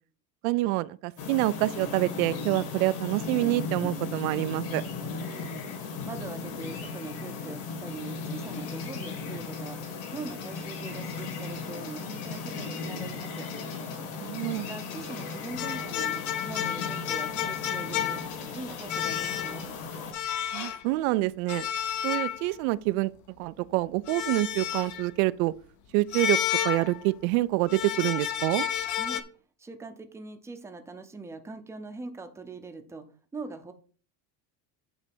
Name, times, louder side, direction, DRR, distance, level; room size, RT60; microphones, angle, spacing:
voice 1, 0.4-4.8 14.2-14.6 20.5-21.7 22.0-25.5 25.9-26.4 26.6-28.7, right 19 dB, 85° right, 0.6 m, -27 dB
sound 1, 1.2-20.1, left 4 dB, 60° left, 3.7 m, -36 dB
voice 2, 5.2-5.6 6.1-9.8 10.1-13.5 14.4-19.7 29.0-29.2 29.6-33.0 33.3-33.7, right 3 dB, 5° right, 0.6 m, -42 dB
sound 2, 15.6-18.5 18.9-19.7 20.1-20.8 21.5-22.7 24.1-25.1 26.1-27.3 27.7-29.2, left 10 dB, 45° left, 0.9 m, -31 dB
8.9 x 3.4 x 6.1 m
cardioid pair, 150°, 41 cm